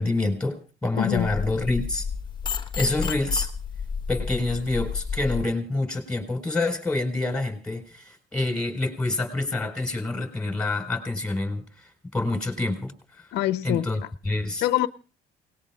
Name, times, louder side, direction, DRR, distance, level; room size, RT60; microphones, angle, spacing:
voice 1, 0.0-2.1 2.8-3.5 4.1-13.3 13.6-14.6, left 2 dB, 5° left, 4.7 m, -27 dB
voice 2, 1.0-1.3 13.3-13.9 14.5-14.9, left 14 dB, 80° left, 0.8 m, -24 dB
sound 1, 1.2-5.4, left 6 dB, 25° left, 1.2 m, -31 dB
29.0 x 19.5 x 2.4 m
cardioid pair, 110°, 17 cm